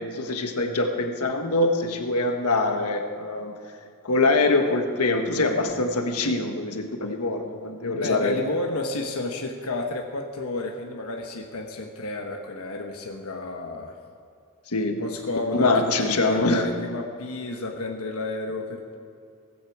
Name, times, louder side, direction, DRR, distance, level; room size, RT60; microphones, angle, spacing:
voice 1, 0.0-3.5 4.0-8.3 14.7-15.0 15.5-16.7, left 2 dB, 85° left, 5 dB, 1.4 m, -24 dB
voice 2, 7.8-14.0 15.0-18.9, left 2 dB, 70° left, 2 dB, 1.3 m, -31 dB
17.5 x 16.0 x 4.8 m, 2.4 s
head